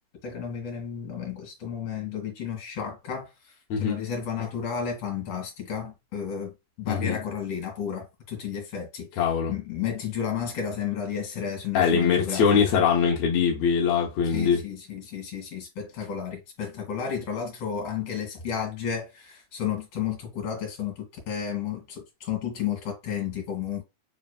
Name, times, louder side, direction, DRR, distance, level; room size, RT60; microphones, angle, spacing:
voice 1, 0.2-12.8 14.2-23.8, left 8 dB, 55° left, 2.5 m, -32 dB
voice 2, 6.9-7.2 9.2-9.5 11.7-14.6, left 6 dB, 70° left, 1.5 m, -22 dB
4.9 x 3.2 x 2.3 m
omnidirectional pair, 3.7 m